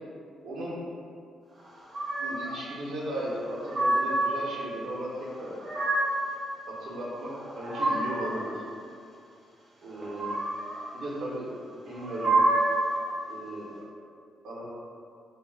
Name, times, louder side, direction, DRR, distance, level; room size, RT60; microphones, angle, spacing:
voice 1, 0.4-0.8 2.2-5.1 5.4-5.5 6.7-8.6 9.8-10.4 10.9-11.5 11.8-12.4 13.3-13.7 14.4-14.7, right 1 dB, 70° right, -6 dB, 0.7 m, -36 dB
sound 1, 1.9-2.5 3.3-4.4 5.3-6.3 7.3-8.4 9.9-10.8 11.9-12.9, right 2 dB, 20° right, 0.5 m, -27 dB
2.3 x 2.2 x 3.4 m, 2.4 s
cardioid pair, 150°, 0 cm